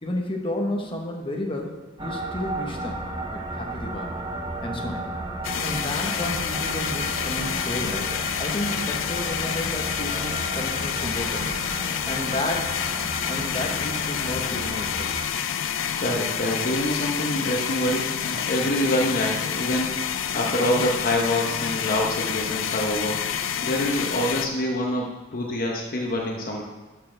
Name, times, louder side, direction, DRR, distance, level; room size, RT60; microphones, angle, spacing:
voice 1, 0.0-3.0 3.3-4.2 4.6-5.1 5.6-11.5 12.0-15.2, left 1 dB, 25° left, 1 dB, 1.1 m, -32 dB
sound 1, 2.0-15.2, right 2 dB, 20° right, 0.7 m, -34 dB
sound 2, 5.4-24.5, left 8 dB, 90° left, 0.5 m, -28 dB
voice 2, 15.8-20.0 20.3-23.2 23.6-26.6, left 1 dB, 45° left, 0 dB, 0.8 m, -26 dB
12.0 x 6.5 x 3.3 m, 1.2 s
head